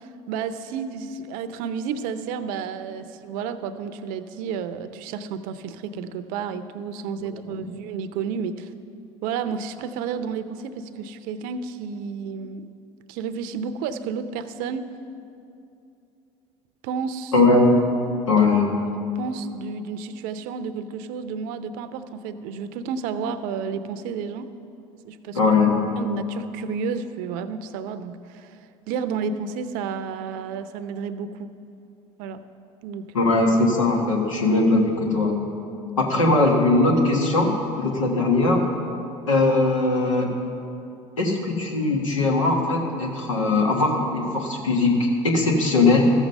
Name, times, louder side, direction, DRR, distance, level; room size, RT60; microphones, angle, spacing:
voice 1, 0.0-8.7 9.2-12.7 13.1-14.9 16.8-17.3 18.4-18.5 19.2-24.5 25.0-25.4 26.0-28.6 28.9-31.5 32.2-32.4 32.8-33.3, right 6 dB, 60° right, 11 dB, 0.6 m, -31 dB
voice 2, 17.3-17.9 18.3-18.7 25.3-25.8 33.1-35.4 36.0-38.6 39.3-40.3 41.2-46.1, left 2 dB, 90° left, 0 dB, 1.5 m, -20 dB
13.5 x 7.3 x 5.3 m, 2.7 s
hypercardioid pair, 75°, 16 cm